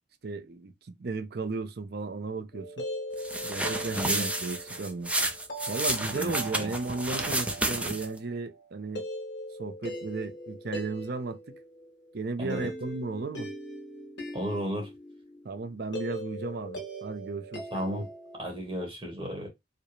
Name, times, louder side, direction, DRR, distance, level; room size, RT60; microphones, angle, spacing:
voice 1, 0.2-2.9 3.4-5.1 5.7-9.0 9.6-11.6 12.1-13.5 15.4-18.1, right 3 dB, 60° right, 0.6 m, -35 dB
sound 1, 2.5-18.4, equal, 70° left, 1.8 m, -41 dB
sound 2, 3.2-8.2, right 1 dB, 10° right, 0.6 m, -31 dB
voice 2, 3.9-4.3 6.1-6.3 6.6-6.7 12.4-12.6 14.3-14.9 17.7-18.0 18.4-19.5, equal, 30° right, 1.1 m, -33 dB
4.9 x 2.2 x 3.1 m
head